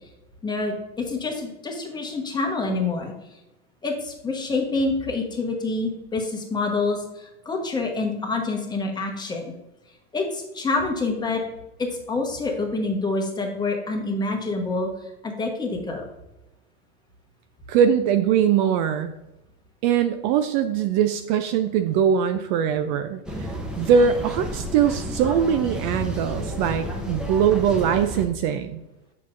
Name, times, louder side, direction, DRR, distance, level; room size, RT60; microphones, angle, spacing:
voice 1, 0.4-3.1 3.8-9.5 10.1-11.4 11.8-14.9 15.2-16.1, left 3 dB, 15° left, 1 dB, 1.1 m, -27 dB
voice 2, 17.7-19.1 19.8-28.8, right 8 dB, 50° right, 9 dB, 0.4 m, -22 dB
sound 1, 23.3-28.3, right 1 dB, 5° right, 0.8 m, -31 dB
7.1 x 5.8 x 2.5 m, 0.96 s
supercardioid pair, 125°, 32 cm